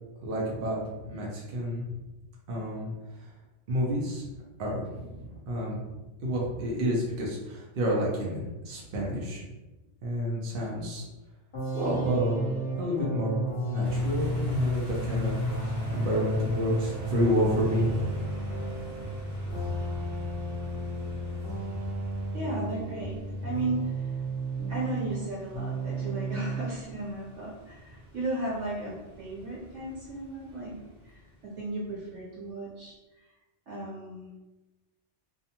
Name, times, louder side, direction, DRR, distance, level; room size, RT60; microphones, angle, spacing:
voice 1, 0.2-1.9 2.5-2.9 3.7-4.3 4.6-5.9 6.2-9.4 10.0-11.0 11.7-15.4 15.6-18.0, equal, 55° right, -4 dB, 0.7 m, -29 dB
sound 1, 11.5-25.3 25.5-26.7, right 1 dB, 55° left, 0.8 m, -33 dB
sound 2, 13.8-32.4, left 2 dB, 30° right, 0.9 m, -43 dB
voice 2, 22.3-23.9 24.7-30.8 31.0-32.9 33.7-34.3, right 2 dB, 75° right, -6 dB, 1.4 m, -35 dB
2.5 x 2.2 x 2.8 m, 1.1 s
omnidirectional pair, 1.3 m